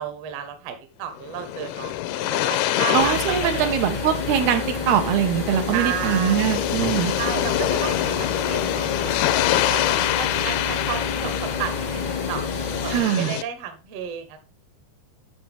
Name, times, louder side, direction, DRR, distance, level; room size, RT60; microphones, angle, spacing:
voice 1, 0.0-2.0 2.2-3.7 5.7-6.6 7.2-9.2 9.5-12.0 12.3-14.4, right 9 dB, 60° right, 8 dB, 1.8 m, -32 dB
sound 1, 1.2-13.4, left 14 dB, 85° left, 2.5 m, -26 dB
voice 2, 2.9-7.1 12.9-13.4, right 10 dB, 80° right, 6 dB, 3.1 m, -22 dB
sound 2, 3.0-13.0, left 3 dB, 40° left, 0.6 m, -30 dB
11.5 x 6.7 x 3.5 m, 0.31 s
omnidirectional pair, 4.4 m